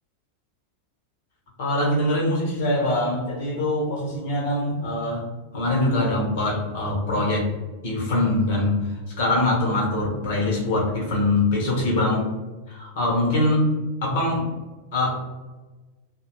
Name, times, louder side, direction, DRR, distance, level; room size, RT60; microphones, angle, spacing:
voice 1, 1.6-5.3 5.5-7.5 7.8-8.9 9.2-12.3 12.7-13.7 14.0-14.5 14.9-15.1, left 1 dB, 55° left, -3 dB, 1.1 m, -23 dB
2.7 x 2.1 x 2.9 m, 1.2 s
figure-of-eight pair, 90°, 0 cm